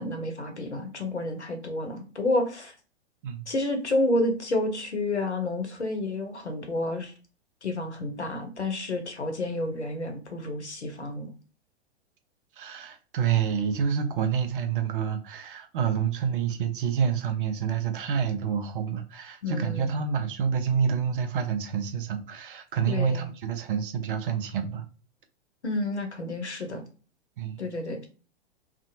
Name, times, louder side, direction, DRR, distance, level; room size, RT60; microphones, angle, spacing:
voice 1, 0.0-2.8 3.5-7.1 7.6-11.3 19.4-19.9 22.9-23.3 25.6-26.8 27.6-28.1, left 2 dB, 85° left, 0.8 m, -30 dB
voice 2, 12.6-24.9 27.4-27.6, right 7 dB, 50° right, 0.6 m, -28 dB
2.5 x 2.5 x 2.7 m
figure-of-eight pair, 105°, 33 cm